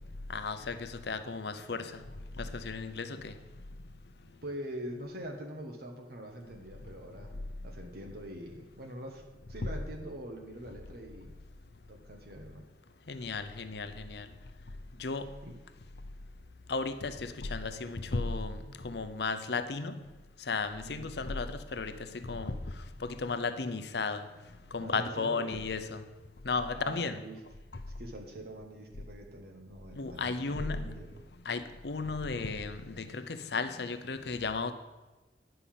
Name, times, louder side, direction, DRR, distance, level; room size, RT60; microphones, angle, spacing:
voice 1, 0.3-1.9 2.4-3.3 13.1-14.3 15.0-15.3 16.7-18.6 18.8-20.0 20.5-22.6 23.0-24.2 24.7-26.0 26.4-27.2 30.0-30.9 31.5-34.7, left 4 dB, 65° left, 0.7 m, -34 dB
voice 2, 4.4-7.3 7.6-9.2 9.5-11.3 11.9-12.6 15.4-15.6 20.8-21.1 24.8-25.6 26.7-27.4 28.0-31.2, right 1 dB, 60° right, 1.3 m, -44 dB
10.5 x 5.5 x 7.4 m
head